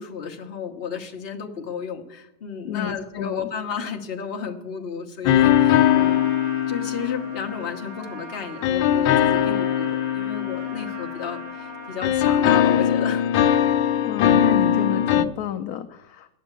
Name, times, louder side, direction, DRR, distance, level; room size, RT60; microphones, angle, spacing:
voice 1, 0.0-6.4 6.7-13.3, left 6 dB, 40° left, 3 dB, 1.0 m, -33 dB
voice 2, 2.7-3.5 14.0-16.3, left 10 dB, 70° left, 8 dB, 0.9 m, -31 dB
sound 1, 5.2-7.9 8.6-11.7 12.0-15.2, left 10 dB, 90° left, 1.3 m, -20 dB
Trumpet, 5.4-12.7, right 5 dB, 65° right, 1.7 m, -41 dB
9.9 x 6.9 x 7.5 m, 0.86 s
omnidirectional pair, 2.0 m